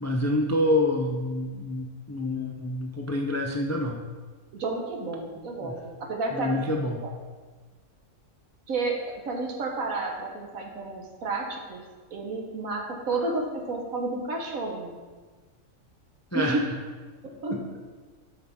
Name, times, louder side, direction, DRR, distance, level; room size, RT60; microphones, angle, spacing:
voice 1, 0.0-4.0 5.6-5.8 6.3-7.0 16.3-16.6 17.5-17.6, left 1 dB, 25° left, 1 dB, 0.3 m, -27 dB
voice 2, 4.5-7.1 8.7-9.0 9.3-11.8 12.1-15.0 16.3-16.6 17.2-17.6, right 3 dB, 80° right, 1 dB, 1.7 m, -31 dB
12.0 x 5.7 x 3.6 m, 1.4 s
omnidirectional pair, 1.4 m